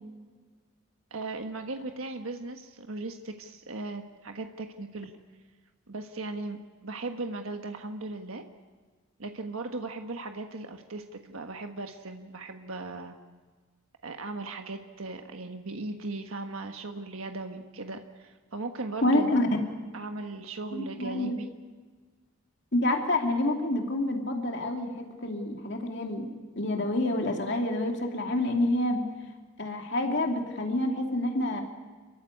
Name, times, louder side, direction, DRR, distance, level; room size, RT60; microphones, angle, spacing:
voice 1, 1.1-5.1 5.9-8.4 9.2-13.2 14.0-19.3 19.9-21.5, right 3 dB, 80° right, 5 dB, 1.4 m, -38 dB
voice 2, 19.0-19.5 20.7-21.4 22.7-26.3 26.6-29.0 29.6-31.6, left 1 dB, 55° left, 2 dB, 2.8 m, -28 dB
27.0 x 15.5 x 9.8 m, 1.4 s
head